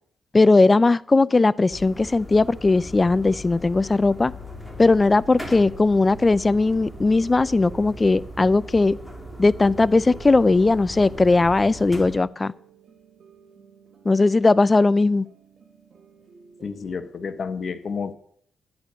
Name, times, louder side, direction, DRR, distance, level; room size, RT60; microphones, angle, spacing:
voice 1, 0.3-4.3 4.8-9.0 9.4-12.5 14.1-15.3, left 3 dB, 30° left, 0.4 m, -18 dB
sound 1, 1.2-17.3, right 6 dB, 55° right, 2.7 m, -54 dB
sound 2, 1.7-12.2, equal, 5° left, 2.7 m, -39 dB
voice 2, 16.6-18.1, left 5 dB, 55° left, 1.1 m, -30 dB
11.5 x 8.4 x 6.2 m
cardioid pair, 70°, 0 cm